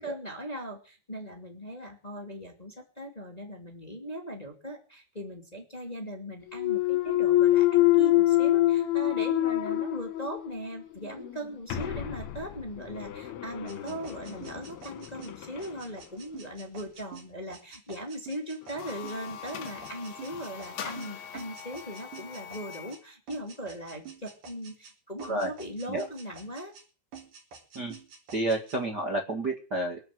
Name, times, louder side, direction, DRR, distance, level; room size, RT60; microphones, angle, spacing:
voice 1, 0.0-26.7, equal, 15° left, 2 dB, 1.5 m, -39 dB
Thump thud, 6.5-10.6 11.0-15.7, left 15 dB, 70° left, 2.9 m, -26 dB
sound 1, 13.7-23.0 23.3-24.9 25.2-26.9 27.1-28.8, right 6 dB, 45° right, 4.2 m, -48 dB
sound 2, 18.6-23.0, left 8 dB, 85° left, 1.5 m, -42 dB
voice 2, 25.2-25.5 25.9-26.0 27.7-27.9 28.3-30.0, right 2 dB, 80° right, 1 dB, 0.9 m, -30 dB
23.5 x 7.9 x 7.8 m, 0.36 s
omnidirectional pair, 5.5 m